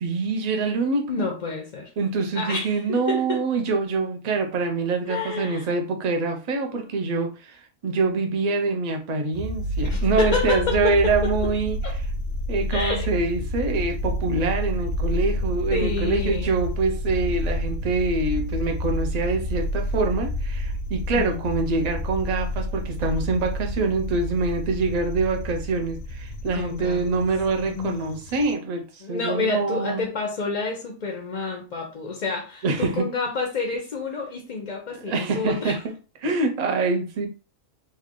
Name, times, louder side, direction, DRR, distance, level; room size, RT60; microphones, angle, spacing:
voice 1, 0.0-1.3 2.0-12.0 12.5-30.0 32.6-33.1 35.1-35.9 36.2-37.3, right 3 dB, 45° right, 0.6 m, -25 dB
voice 2, 1.1-1.9 2.3-3.4 5.1-5.7 6.8-6.9 9.8-11.5 11.8-11.9 12.7-13.1 15.7-16.6 21.2-21.4 26.5-27.2 27.7-28.2 29.0-35.8, left 4 dB, 40° left, 0.6 m, -29 dB
sound 1, 9.3-28.5, equal, 75° left, 1.0 m, -29 dB
3.2 x 2.4 x 3.7 m
omnidirectional pair, 1.4 m